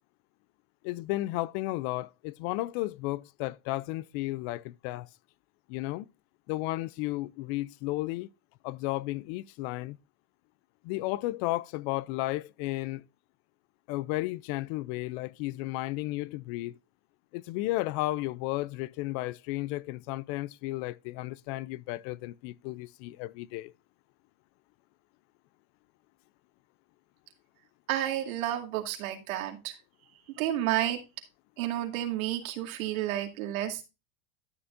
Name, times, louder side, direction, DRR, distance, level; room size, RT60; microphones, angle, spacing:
voice 1, 0.8-5.1 5.7-6.1 6.5-8.3 8.6-10.0 10.8-13.0 13.9-16.8 17.3-23.7, left 18 dB, 50° left, 0.5 m, -33 dB
voice 2, 27.9-29.8 30.3-31.0 31.6-33.8, right 13 dB, 75° right, 2.3 m, -31 dB
12.5 x 7.0 x 2.6 m
supercardioid pair, 125°, 42 cm